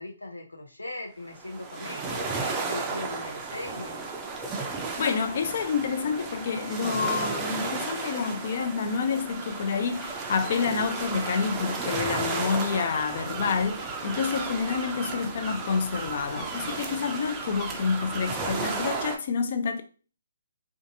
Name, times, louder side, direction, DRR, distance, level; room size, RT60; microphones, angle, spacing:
voice 1, 0.0-2.3 2.6-4.0, left 2 dB, 85° left, 0.7 m, -39 dB
sound 1, 1.3-19.2, right 4 dB, 15° right, 0.4 m, -34 dB
voice 2, 5.0-19.8, left 5 dB, 45° left, 0.4 m, -28 dB
2.5 x 2.3 x 2.6 m
figure-of-eight pair, 140°, 0 cm